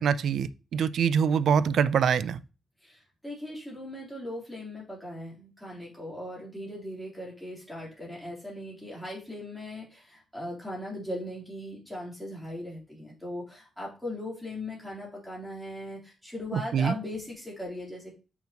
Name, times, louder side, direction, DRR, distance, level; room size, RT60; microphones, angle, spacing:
voice 1, 0.0-2.4 16.5-16.9, right 7 dB, 70° right, 0.4 m, -24 dB
voice 2, 2.8-18.1, left 1 dB, 5° left, 3.2 m, -39 dB
7.1 x 5.8 x 2.9 m
wide cardioid pair, 140°, 0 cm